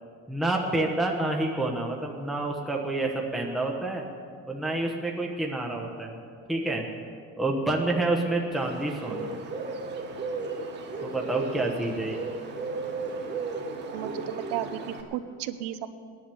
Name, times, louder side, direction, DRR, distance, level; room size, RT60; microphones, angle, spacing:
voice 1, 0.3-4.1 4.5-6.2 6.5-6.9 7.4-9.4 11.0-12.2, right 2 dB, ahead, -1 dB, 1.1 m, -28 dB
Bird, 8.5-15.0, right 3 dB, 25° right, 1.6 m, -35 dB
voice 2, 13.9-15.9, right 12 dB, 65° right, 11 dB, 1.0 m, -34 dB
18.0 x 11.0 x 7.0 m, 2.2 s
cardioid pair, 170°, 42 cm